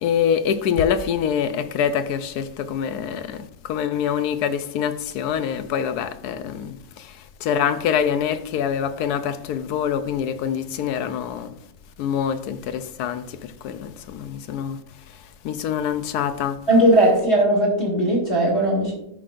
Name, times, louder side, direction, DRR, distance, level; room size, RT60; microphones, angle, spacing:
voice 1, 0.0-6.8 7.4-11.5 12.0-13.3 13.6-14.8 15.4-16.6, left 8 dB, 85° left, 1.2 m, -25 dB
voice 2, 16.7-18.9, right 1 dB, 45° left, 3.1 m, -18 dB
13.5 x 6.1 x 2.5 m
omnidirectional pair, 1.6 m